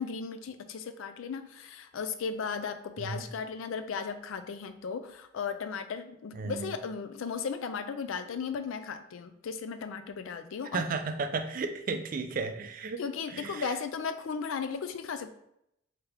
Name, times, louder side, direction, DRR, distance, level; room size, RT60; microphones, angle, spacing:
voice 1, 0.0-10.8 13.0-15.3, left 5 dB, 80° left, 10 dB, 0.4 m, -36 dB
voice 2, 6.3-6.7 10.7-13.0 13.3-13.7, right 4 dB, 45° right, 7 dB, 0.4 m, -34 dB
3.5 x 2.8 x 3.4 m, 0.77 s
head